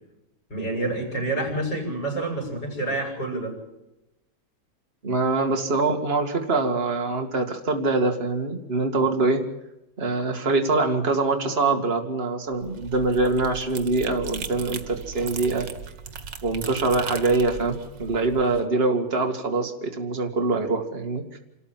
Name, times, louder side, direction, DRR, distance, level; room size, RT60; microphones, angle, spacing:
voice 1, 0.5-3.5, right 2 dB, 85° left, 0 dB, 7.8 m, -28 dB
voice 2, 5.0-9.4 10.0-15.7 16.4-21.4, right 3 dB, 35° right, 4 dB, 2.4 m, -24 dB
sound 1, 12.5-18.6, right 5 dB, 90° right, 2.1 m, -38 dB
27.5 x 14.0 x 7.5 m, 0.92 s
omnidirectional pair, 1.9 m